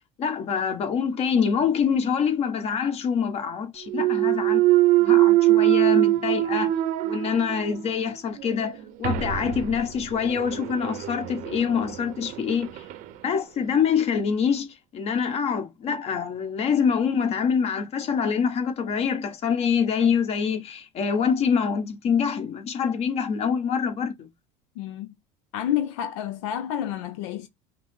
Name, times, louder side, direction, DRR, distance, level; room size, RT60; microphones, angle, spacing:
voice 1, 0.2-4.6 5.0-6.7 7.0-12.8 13.2-24.3, left 6 dB, 40° left, 1.2 m, -25 dB
Thump thud, 3.9-7.9 8.4-13.0, right 16 dB, 60° right, 0.7 m, -23 dB
voice 2, 24.8-25.1 25.5-27.5, left 10 dB, 85° left, 0.6 m, -29 dB
5.7 x 2.0 x 3.6 m
supercardioid pair, 120°, 16 cm